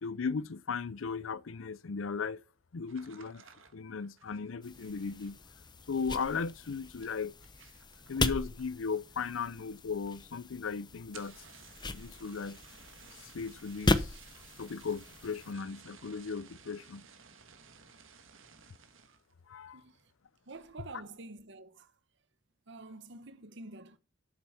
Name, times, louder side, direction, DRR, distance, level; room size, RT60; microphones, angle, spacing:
voice 1, 0.0-2.4 2.7-3.4 3.7-5.4 5.9-7.3 8.1-11.4 11.9-12.6 13.1-14.2 14.6-17.0 19.5-19.8, left 5 dB, 85° left, 0.6 m, -37 dB
sound 1, 2.8-9.0 9.2-9.8 10.1-10.2 10.4-10.5 11.0-19.3 19.8-20.1 20.5-20.9, right 6 dB, 85° right, 1.4 m, -57 dB
sound 2, 4.6-15.5, left 2 dB, 25° left, 0.7 m, -37 dB
voice 2, 19.7-20.0 20.5-21.9 22.7-24.0, right 3 dB, 65° right, 1.1 m, -48 dB
8.3 x 7.2 x 5.5 m
head